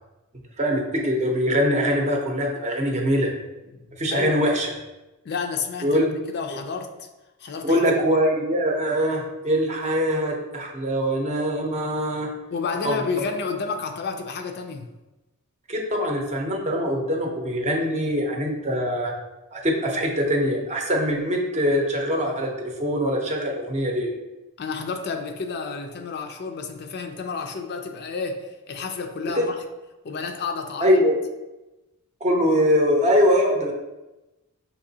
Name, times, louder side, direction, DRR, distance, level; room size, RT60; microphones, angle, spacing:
voice 1, 0.6-3.3 4.0-4.7 5.8-6.1 7.6-12.3 12.8-12.9 15.7-19.1 19.5-22.5 22.8-24.1 29.4-29.5 30.8-31.2 32.2-33.7, equal, 30° right, 0 dB, 0.7 m, -22 dB
voice 2, 3.7-4.6 5.2-6.1 6.3-7.1 7.4-7.9 12.5-14.9 24.6-29.6 30.0-31.0, left 4 dB, 50° left, 6 dB, 0.4 m, -31 dB
5.8 x 2.9 x 2.7 m, 1.0 s
head